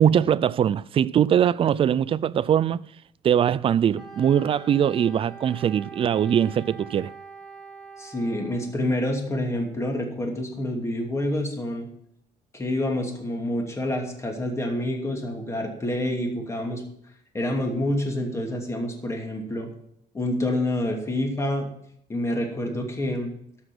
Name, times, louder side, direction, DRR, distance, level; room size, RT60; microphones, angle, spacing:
voice 1, 0.0-2.8 3.2-7.1, right 9 dB, 35° right, 0.4 m, -21 dB
Wind instrument woodwind instrument, 4.0-8.8, right 4 dB, ahead, 3.9 m, -44 dB
voice 2, 8.0-11.9 12.5-16.8 17.3-19.7 20.1-21.7 22.1-23.3, left 1 dB, 20° left, 2.6 m, -27 dB
13.0 x 6.2 x 6.0 m
cardioid pair, 135°, 16 cm